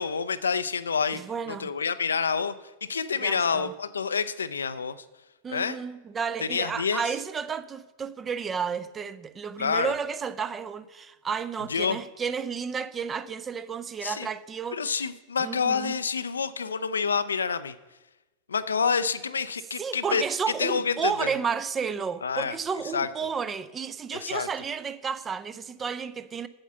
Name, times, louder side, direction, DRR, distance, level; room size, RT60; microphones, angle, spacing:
voice 1, 0.0-1.2 1.5-2.5 2.9-5.0 5.5-5.8 6.4-7.0 9.6-9.9 11.7-12.0 14.0-14.3 14.7-17.7 18.5-20.2 20.6-21.3 22.2-22.6 22.9-23.1 24.1-24.5, left 5 dB, 70° left, 0.5 m, -28 dB
voice 2, 1.1-1.7 3.2-3.7 5.4-15.0 15.4-16.0 19.8-26.5, right 6 dB, 20° right, 0.5 m, -32 dB
8.8 x 7.1 x 6.8 m
figure-of-eight pair, 90°, 0 cm